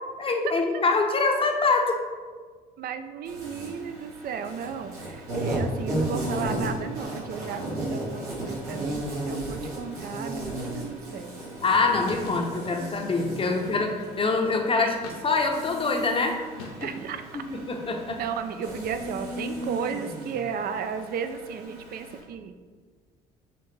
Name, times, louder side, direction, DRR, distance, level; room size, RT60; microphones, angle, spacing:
voice 1, 0.2-2.0 11.6-15.0 15.2-16.4 17.5-18.2, left 3 dB, 30° left, 3 dB, 0.7 m, -24 dB
voice 2, 2.8-11.4 13.4-13.6 14.8-14.9 16.8-17.4 18.2-22.5, right 6 dB, 50° right, 9 dB, 0.4 m, -34 dB
Insect, 3.2-22.2, right 1 dB, 85° right, 1.5 m, -35 dB
sound 1, 12.1-12.5 13.6-14.2 15.0-15.6 16.6-17.2, left 3 dB, 90° left, 0.6 m, -42 dB
5.8 x 2.5 x 3.2 m, 1.5 s
hypercardioid pair, 60°, 19 cm